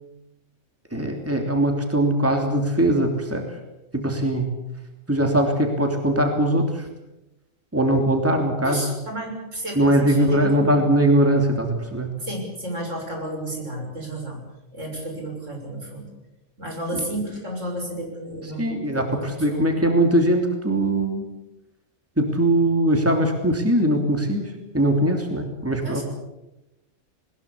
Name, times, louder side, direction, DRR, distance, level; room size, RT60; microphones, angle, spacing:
voice 1, 0.9-3.6 3.9-4.5 5.1-6.9 7.7-8.8 9.7-12.1 16.9-17.0 18.6-21.3 22.2-26.0, right 1 dB, 10° right, 3 dB, 3.1 m, -21 dB
voice 2, 8.6-10.7 12.2-14.4 14.7-16.1 16.6-19.6 25.8-26.0, right 1 dB, 70° right, 1 dB, 6.9 m, -32 dB
21.0 x 20.5 x 8.5 m, 0.95 s
omnidirectional pair, 1.3 m